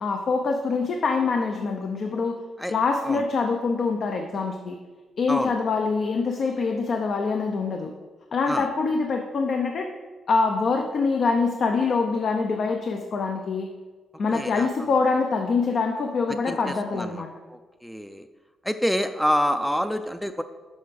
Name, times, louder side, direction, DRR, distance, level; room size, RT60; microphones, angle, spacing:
voice 1, 0.0-2.4 2.7-4.8 5.2-7.9 8.3-9.9 10.3-13.7 14.2-17.3, left 4 dB, 60° left, 3 dB, 0.6 m, -25 dB
voice 2, 14.3-14.7 16.3-17.2 17.5-18.3 18.6-20.4, equal, ahead, 8 dB, 0.4 m, -27 dB
6.4 x 5.8 x 5.1 m, 1.4 s
supercardioid pair, 55°, 0 cm